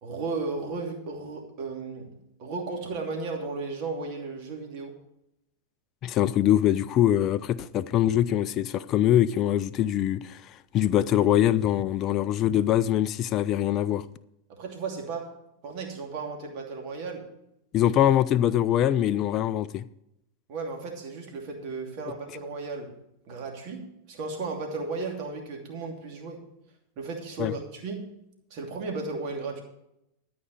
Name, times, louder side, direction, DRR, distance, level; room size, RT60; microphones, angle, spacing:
voice 1, 0.0-2.1 2.4-4.9 14.5-15.3 15.6-17.2 20.5-22.9 23.3-26.4 27.0-28.1 28.5-29.6, right 3 dB, 45° right, 2.7 m, -35 dB
voice 2, 6.0-14.1 17.7-19.9 27.4-27.5, left 11 dB, 35° left, 0.4 m, -23 dB
13.0 x 5.2 x 8.0 m
figure-of-eight pair, 90°, 0 cm